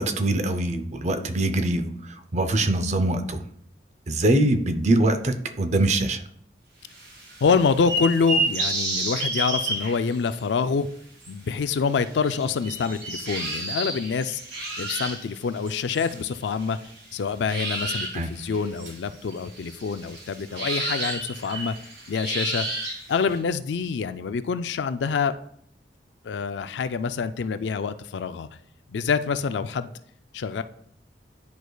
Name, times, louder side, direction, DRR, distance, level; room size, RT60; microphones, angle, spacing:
voice 1, 0.0-3.4 4.1-6.2 18.1-18.3, right 1 dB, 40° right, 9 dB, 0.6 m, -23 dB
sound 1, 6.9-10.5 11.2-11.3 12.0-17.1 17.5-23.4, right 1 dB, 70° right, 2.9 m, -31 dB
voice 2, 7.4-10.9 11.3-14.4 14.8-16.8 17.1-21.7 22.1-22.7 23.1-25.3 26.2-28.5 28.9-29.9 30.3-30.6, left 5 dB, 80° left, 12 dB, 0.4 m, -26 dB
10.0 x 4.7 x 2.3 m, 0.67 s
head